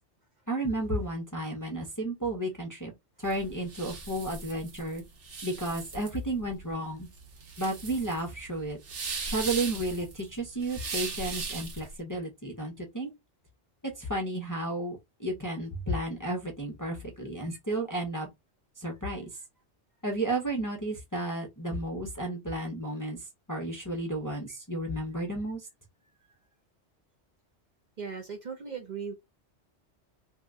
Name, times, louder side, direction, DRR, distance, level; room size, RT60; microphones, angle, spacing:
voice 1, 0.5-2.9 3.2-5.0 5.4-7.1 7.6-8.8 9.2-13.1 13.8-18.3 18.8-19.3 20.0-23.2 23.5-25.6, right 1 dB, 25° left, 0.5 m, -32 dB
sound 1, 3.2-11.9, right 4 dB, 90° right, 1.2 m, -38 dB
voice 2, 28.0-29.1, right 6 dB, 50° right, 0.6 m, -37 dB
2.7 x 2.1 x 3.5 m
omnidirectional pair, 1.2 m